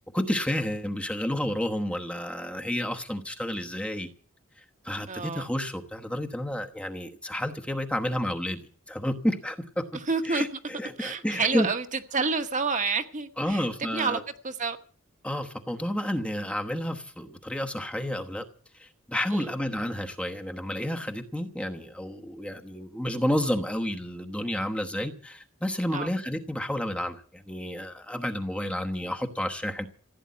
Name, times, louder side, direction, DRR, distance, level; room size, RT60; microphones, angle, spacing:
voice 1, 0.1-4.1 4.8-8.6 8.9-9.8 10.3-11.7 13.4-14.2 15.2-18.4 18.8-29.9, left 1 dB, 5° left, 1.1 m, -30 dB
voice 2, 5.1-5.5 9.9-10.4 11.0-14.8 19.3-19.5 25.9-26.1, right 4 dB, 35° right, 1.3 m, -29 dB
15.5 x 9.0 x 9.4 m
head